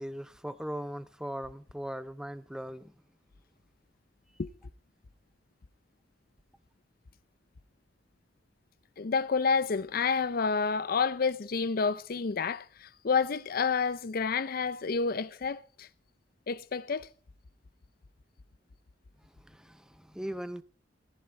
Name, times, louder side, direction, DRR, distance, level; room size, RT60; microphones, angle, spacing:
voice 1, 0.0-2.9 19.4-20.6, equal, 5° right, 0.6 m, -39 dB
voice 2, 9.0-15.9 16.5-17.1, left 5 dB, 55° left, 0.6 m, -29 dB
14.5 x 14.0 x 4.3 m
head